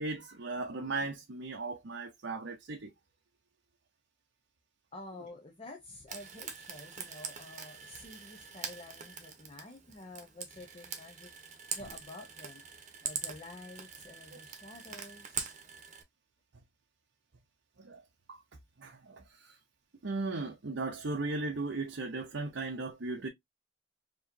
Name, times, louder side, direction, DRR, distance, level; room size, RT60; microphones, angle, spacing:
voice 1, 0.0-2.9 17.8-18.0 18.3-18.4 18.8-19.6 20.0-23.3, right 3 dB, 65° right, 0.7 m, -37 dB
voice 2, 4.9-11.3 11.7-12.6 13.0-15.5, left 2 dB, 30° left, 0.8 m, -49 dB
Frying (food), 6.1-16.0, right 6 dB, 40° right, 1.0 m, -43 dB
4.6 x 3.0 x 2.7 m
head